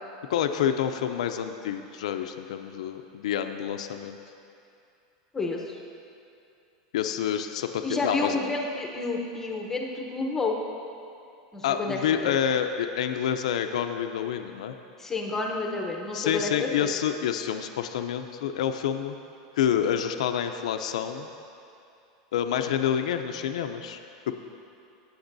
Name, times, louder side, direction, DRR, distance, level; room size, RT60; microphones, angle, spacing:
voice 1, 0.3-4.2 6.9-8.4 11.6-14.7 16.1-19.1 19.6-21.3 22.3-24.0 24.3-24.4, left 9 dB, 85° left, 7 dB, 0.5 m, -28 dB
voice 2, 5.3-5.8 7.8-10.6 11.5-12.4 15.0-16.9, left 3 dB, 10° left, 1 dB, 0.8 m, -30 dB
16.0 x 7.9 x 2.6 m, 2.6 s
supercardioid pair, 145°, 3 cm